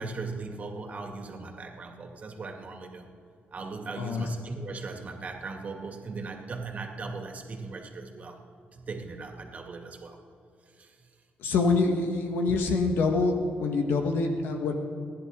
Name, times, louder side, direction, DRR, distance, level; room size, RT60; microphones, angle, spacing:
voice 1, 0.0-3.1 3.5-8.4 8.7-10.2 10.8-10.9, right 3 dB, 45° right, 3 dB, 2.3 m, -38 dB
voice 2, 4.0-4.3 11.4-14.7, left 3 dB, 85° left, 4 dB, 1.5 m, -26 dB
29.0 x 10.5 x 3.7 m, 2.4 s
cardioid pair, 105°, 4 cm